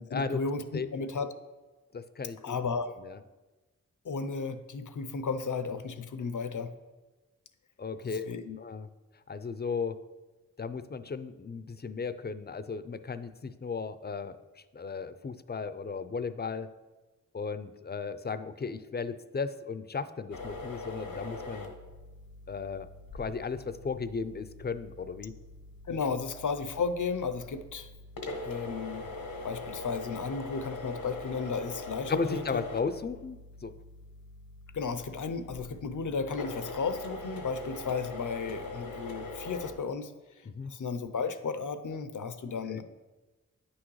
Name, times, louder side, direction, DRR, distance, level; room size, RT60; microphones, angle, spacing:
voice 1, 0.0-1.3 2.4-2.9 4.0-6.7 8.0-8.6 25.9-27.9 28.4-29.1 29.4-32.6 34.7-42.8, left 5 dB, 65° left, 11 dB, 0.7 m, -34 dB
voice 2, 1.9-2.6 3.0-3.2 7.8-8.3 8.6-8.9 9.3-10.0 10.6-14.4 14.7-16.7 17.3-21.7 22.5-22.9 23.1-25.3 32.1-33.7 40.5-40.7 42.7-42.8, left 5 dB, 30° left, 13 dB, 0.5 m, -35 dB
sound 1, 20.3-39.7, left 2 dB, 85° left, 1.2 m, -42 dB
9.5 x 6.2 x 3.2 m, 1.2 s
cardioid pair, 40°, 33 cm